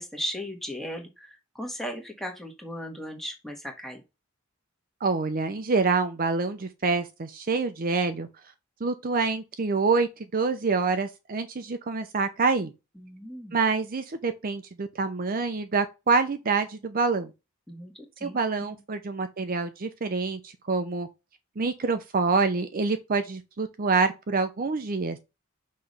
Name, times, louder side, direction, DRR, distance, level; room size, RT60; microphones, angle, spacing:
voice 1, 0.0-4.0 13.0-13.6 17.7-18.8, equal, ahead, 1.4 m, -37 dB
voice 2, 5.0-8.3 8.8-12.7 13.5-17.3 18.2-21.1 21.6-25.2, right 4 dB, 40° right, 0.6 m, -26 dB
5.9 x 3.1 x 5.4 m
head